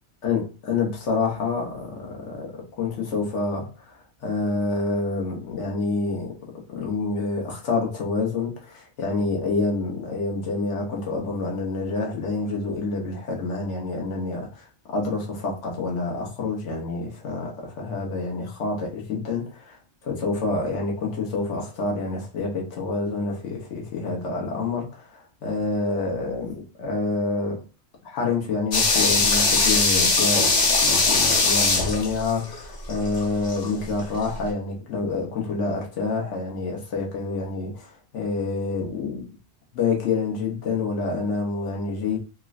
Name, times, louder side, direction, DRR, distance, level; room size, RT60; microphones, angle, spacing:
voice 1, 0.2-27.6 28.0-39.3 39.7-42.2, left 3 dB, 80° left, 1.2 m, -28 dB
sound 1, 28.7-33.7 34.0-34.1, left 3 dB, 45° left, 0.7 m, -21 dB
3.6 x 2.1 x 2.4 m
omnidirectional pair, 1.2 m